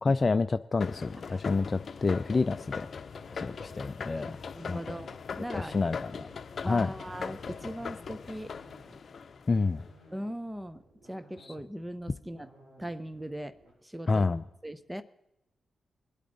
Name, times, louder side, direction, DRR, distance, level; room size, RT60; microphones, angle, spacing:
voice 1, 0.0-2.9 3.3-4.4 4.7-4.8 5.6-6.3 6.6-6.9 9.5-9.8 14.1-14.4, left 3 dB, 40° left, 10 dB, 0.4 m, -28 dB
sound 1, 0.8-9.9, left 5 dB, 60° left, 0.7 m, -41 dB
sound 2, 2.9-13.7, right 1 dB, 80° right, 6.7 m, -58 dB
voice 2, 4.2-5.8 6.6-8.5 10.1-10.8 11.1-12.5 12.8-13.6 13.8-14.3 14.6-15.0, equal, 10° right, 13 dB, 0.7 m, -39 dB
24.0 x 8.4 x 3.9 m, 0.89 s
cardioid pair, 60°, 0 cm